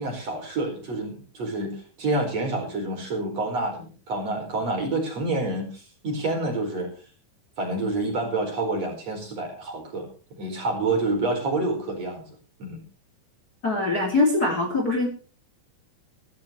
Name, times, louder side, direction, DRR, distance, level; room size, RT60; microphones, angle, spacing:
voice 1, 0.0-6.9 7.6-12.2 12.6-12.8, right 2 dB, 45° right, 2 dB, 5.7 m, -28 dB
voice 2, 13.6-15.1, left 2 dB, 25° left, 2 dB, 2.9 m, -22 dB
16.5 x 14.5 x 3.3 m, 0.36 s
omnidirectional pair, 4.3 m